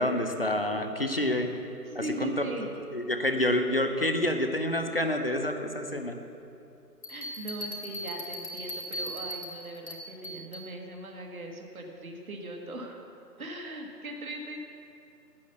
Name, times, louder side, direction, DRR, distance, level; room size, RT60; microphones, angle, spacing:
voice 1, 0.0-1.5 2.2-2.5 2.9-6.2, left 1 dB, 35° left, 5 dB, 0.6 m, -28 dB
voice 2, 1.8-2.7 4.9-5.1 7.1-13.0 13.4-14.6, right 1 dB, 60° right, 2 dB, 1.5 m, -39 dB
sound 1, 7.0-10.7, equal, 80° left, 2.6 m, -38 dB
8.5 x 8.3 x 7.8 m, 2.7 s
figure-of-eight pair, 160°, 49 cm